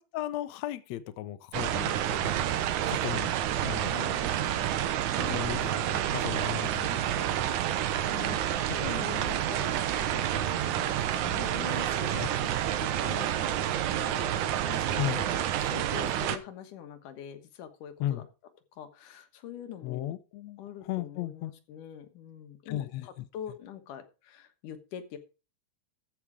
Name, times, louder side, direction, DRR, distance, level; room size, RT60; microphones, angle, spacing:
voice 1, 0.0-2.5 2.9-3.3 3.6-4.2 5.2-7.4 8.7-8.9 12.1-12.3 15.0-15.2 18.0-18.3 19.8-21.5 22.7-23.3, left 13 dB, 70° left, 1.9 m, -36 dB
sound 1, 1.5-16.4, right 11 dB, 75° right, 2.4 m, -29 dB
voice 2, 3.8-4.7 5.1-6.0 7.8-12.5 12.7-18.2 18.8-20.1 20.6-25.2, left 9 dB, 90° left, 2.9 m, -44 dB
14.5 x 6.1 x 4.9 m
omnidirectional pair, 3.5 m